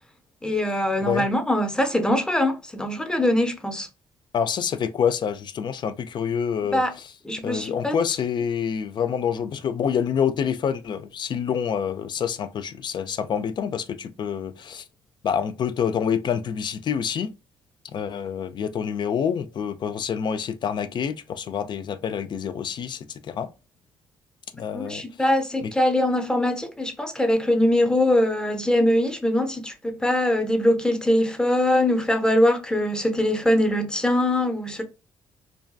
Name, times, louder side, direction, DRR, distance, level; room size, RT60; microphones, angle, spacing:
voice 1, 0.4-3.9 6.7-6.9 7.2-8.0 24.7-34.8, left 1 dB, 10° left, 0.6 m, -22 dB
voice 2, 4.3-7.1 7.4-14.8 15.2-17.3 17.9-23.5 24.6-25.0 25.6-25.7, left 7 dB, 50° left, 0.4 m, -27 dB
2.6 x 2.2 x 2.2 m
hypercardioid pair, 55°, 10 cm